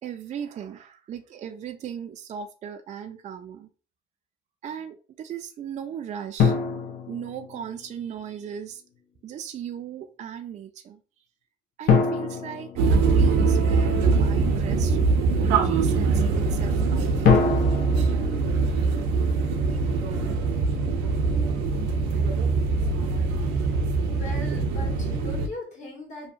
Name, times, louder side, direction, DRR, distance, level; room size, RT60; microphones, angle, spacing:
voice 1, 0.0-3.7 4.6-6.6 7.1-8.8 9.2-11.0 11.8-15.0 15.4-17.6, right 8 dB, 40° right, 6 dB, 0.4 m, -37 dB
sound 1, 6.4-8.0 11.9-13.8 17.2-19.5, left 5 dB, 60° left, 0.6 m, -25 dB
sound 2, 12.7-25.5, right 4 dB, 90° right, 0.5 m, -23 dB
voice 2, 24.1-26.3, left 1 dB, 40° left, -1 dB, 1.5 m, -39 dB
2.7 x 2.1 x 2.5 m, 0.35 s
cardioid pair, 90°, 19 cm